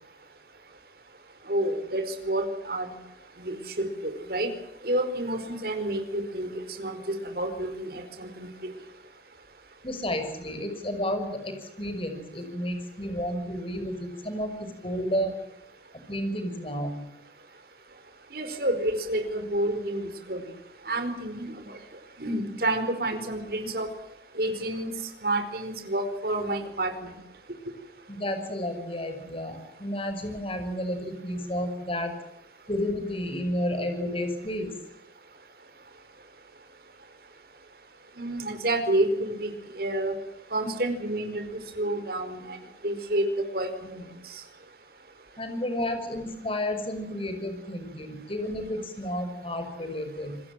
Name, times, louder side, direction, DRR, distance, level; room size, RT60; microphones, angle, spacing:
voice 1, 1.5-2.9 3.4-4.5 4.8-8.5 18.3-20.4 20.9-21.8 22.2-23.9 24.4-24.9 25.2-27.2 38.2-40.1 40.5-42.6 42.8-43.2 43.5-44.0, right 1 dB, 55° right, 7 dB, 4.7 m, -29 dB
voice 2, 9.8-15.3 16.1-17.0 28.1-32.1 32.7-34.7 45.4-50.4, left 1 dB, 30° left, 7 dB, 6.0 m, -31 dB
27.5 x 21.5 x 7.5 m, 0.87 s
head